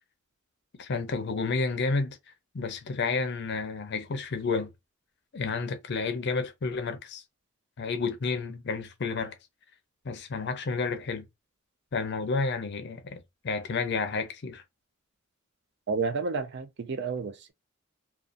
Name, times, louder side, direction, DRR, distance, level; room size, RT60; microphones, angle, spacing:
voice 1, 0.8-2.2 2.5-4.7 5.3-7.2 7.8-9.4 10.0-11.2 11.9-14.6, left 4 dB, 55° left, 0.5 m, -30 dB
voice 2, 15.9-17.5, right 4 dB, 55° right, 0.4 m, -31 dB
2.5 x 2.3 x 2.4 m
head